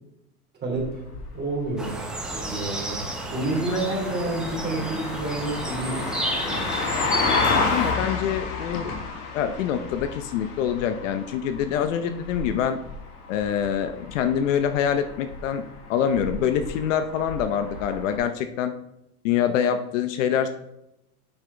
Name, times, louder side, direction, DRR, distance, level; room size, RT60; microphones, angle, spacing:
voice 1, 0.6-1.0 1.3-1.9 2.3-3.0 3.3-6.1 6.4-6.7, right 2 dB, 20° right, -2 dB, 3.0 m, -29 dB
sound 1, 0.7-18.2, left 4 dB, 85° left, 1.7 m, -32 dB
sound 2, 1.8-7.9, right 1 dB, ahead, 0.9 m, -31 dB
voice 2, 7.5-8.9 9.3-12.8 13.3-15.6 15.9-18.7 19.2-20.5, left 8 dB, 60° left, 9 dB, 0.7 m, -25 dB
8.0 x 5.6 x 4.0 m, 0.86 s
supercardioid pair, 140°, 45 cm